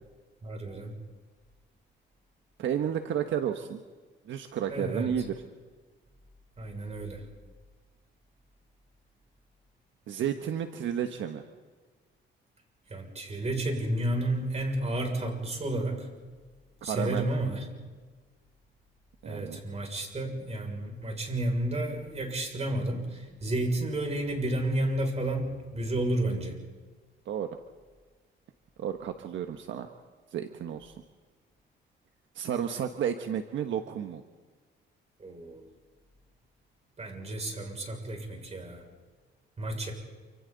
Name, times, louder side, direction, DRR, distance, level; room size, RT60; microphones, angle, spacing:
voice 1, 0.4-0.9 4.7-5.1 6.6-7.2 12.9-16.1 16.8-17.7 19.2-26.6 35.2-35.6 37.0-38.8 39.6-39.9, right 1 dB, 35° right, 2 dB, 6.5 m, -31 dB
voice 2, 2.6-3.8 4.3-5.4 10.1-11.4 16.8-17.3 19.2-19.6 27.3-27.5 28.8-29.9 30.3-30.9 32.3-34.2, right 9 dB, 75° right, 6 dB, 1.3 m, -32 dB
28.5 x 26.5 x 4.1 m, 1.4 s
cardioid pair, 90°, 20 cm